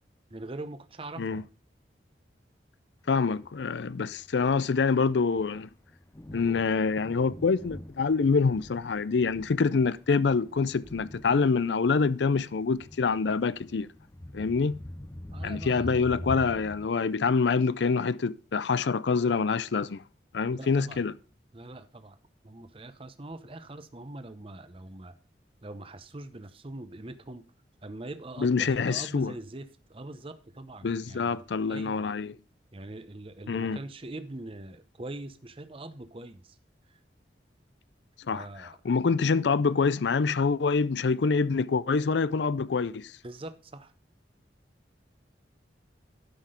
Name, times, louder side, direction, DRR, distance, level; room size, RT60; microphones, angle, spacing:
voice 1, 0.3-1.4 15.3-16.0 20.5-21.0 21.5-22.2 22.4-25.1 25.6-27.4 27.8-32.1 32.7-36.5 36.9-37.0 38.3-38.8 43.2-43.9, right 2 dB, 30° right, 0.8 m, -42 dB
voice 2, 3.1-5.7 6.3-13.9 14.3-14.8 15.4-20.0 20.3-21.1 28.4-29.3 30.8-32.3 33.5-33.8 38.3-43.1, left 4 dB, 80° left, 0.5 m, -26 dB
Thunder, 3.3-16.9, left 1 dB, 15° left, 0.6 m, -44 dB
11.5 x 6.0 x 5.1 m
head